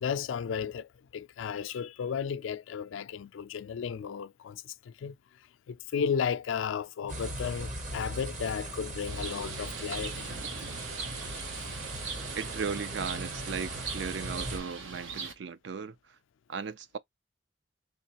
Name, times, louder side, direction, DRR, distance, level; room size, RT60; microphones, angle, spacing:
voice 1, 0.0-5.1 5.7-10.3 11.6-11.7, left 7 dB, 85° left, 0.3 m, -34 dB
sound 1, 7.1-14.6, right 1 dB, 40° right, 0.8 m, -39 dB
Bird, 9.1-15.3, right 5 dB, 85° right, 0.9 m, -41 dB
voice 2, 12.3-16.0 16.5-17.0, right 5 dB, 65° right, 0.4 m, -36 dB
3.6 x 3.0 x 2.8 m
head